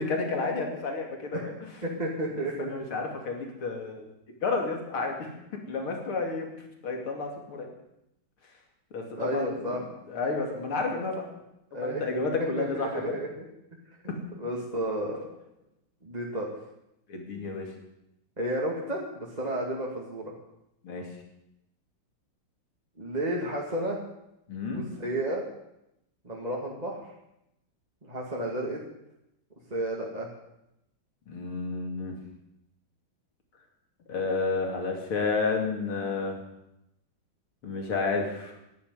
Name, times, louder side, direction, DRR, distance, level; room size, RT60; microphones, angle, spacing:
voice 1, 0.0-1.5 2.4-4.1 4.4-6.5 6.8-7.7 8.9-9.6 10.1-11.2 11.7-13.2 14.1-14.2 17.1-17.7 20.8-21.1 24.5-24.9 31.3-32.2 34.1-36.4 37.6-38.5, left 3 dB, 80° left, 2 dB, 3.5 m, -31 dB
voice 2, 1.8-2.7 9.2-9.8 11.7-12.0 12.6-13.5 14.4-15.3 16.0-16.5 18.4-20.2 23.0-24.0 24.7-25.4 26.2-27.0 28.0-28.8 29.7-30.3, right 1 dB, 20° right, -2 dB, 2.3 m, -32 dB
11.5 x 11.0 x 9.7 m, 0.84 s
omnidirectional pair, 2.3 m